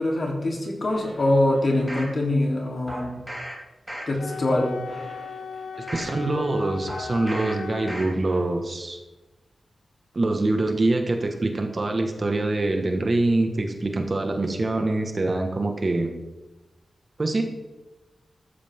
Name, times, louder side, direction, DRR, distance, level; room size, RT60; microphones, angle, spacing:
voice 1, 0.0-3.2 4.1-4.7, left 1 dB, 45° left, -1 dB, 3.4 m, -23 dB
sound 1, 0.9-2.1 2.9-3.5 3.9-4.4 4.8-6.1 6.9-7.5 7.9-8.4 8.8-8.9, right 1 dB, 5° right, 4.3 m, -38 dB
Wind instrument woodwind instrument, 4.2-8.0, left 5 dB, 85° left, 0.9 m, -37 dB
voice 2, 5.9-9.0 10.1-16.1 17.2-17.4, right 2 dB, 35° right, 4 dB, 1.6 m, -24 dB
14.5 x 14.0 x 3.7 m, 1.1 s
wide cardioid pair, 125°, 0 cm